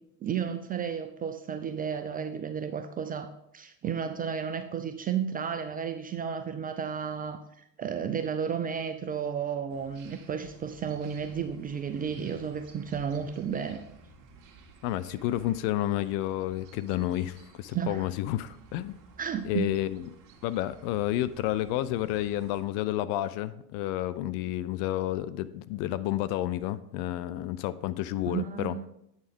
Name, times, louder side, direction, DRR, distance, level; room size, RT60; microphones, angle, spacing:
voice 1, 0.2-13.8 17.7-18.1 19.2-19.8 28.3-28.9, right 7 dB, 20° right, 7 dB, 0.3 m, -33 dB
sound 1, 9.7-22.6, right 5 dB, 40° right, 1.5 m, -54 dB
voice 2, 14.8-19.0 19.4-20.1 20.4-28.9, left 14 dB, 50° left, 15 dB, 0.5 m, -30 dB
8.7 x 6.4 x 3.6 m, 0.79 s
hypercardioid pair, 80°, 48 cm